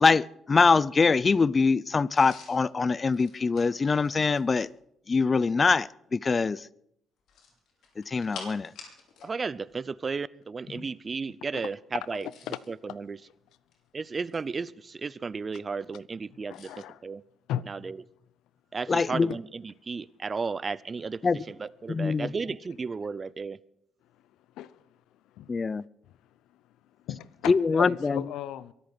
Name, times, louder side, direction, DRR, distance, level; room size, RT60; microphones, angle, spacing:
voice 1, 0.0-4.7 5.1-6.6 8.1-8.7 18.9-19.3 21.2-21.4 21.9-22.3 25.5-25.8 27.5-28.2, left 4 dB, 35° left, 0.5 m, -23 dB
sound 1, 2.1-4.8 7.2-9.3 9.6-9.8 12.0-12.7 13.5-14.6 16.5-16.8, left 5 dB, 70° left, 5.5 m, -48 dB
voice 2, 9.2-12.3 12.7-13.2 13.9-16.7 17.0-17.2 17.6-18.0 18.7-23.6, right 4 dB, 35° right, 0.5 m, -34 dB
voice 3, 12.2-12.6 16.5-17.0 17.5-17.6 24.6-24.7 25.4-25.5 27.0-28.7, left 12 dB, 90° left, 0.7 m, -35 dB
23.5 x 8.5 x 6.1 m
cardioid pair, 90°, 0 cm